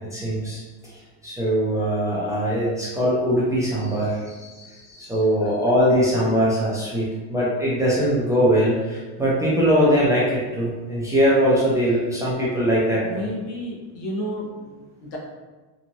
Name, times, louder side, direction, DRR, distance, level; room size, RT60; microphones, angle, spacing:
voice 1, 0.1-0.6 1.2-13.3, equal, 10° right, -9 dB, 0.4 m, -21 dB
voice 2, 13.0-15.2, equal, 70° left, -2 dB, 0.9 m, -32 dB
2.9 x 2.3 x 2.6 m, 1.3 s
cardioid pair, 150°, 42 cm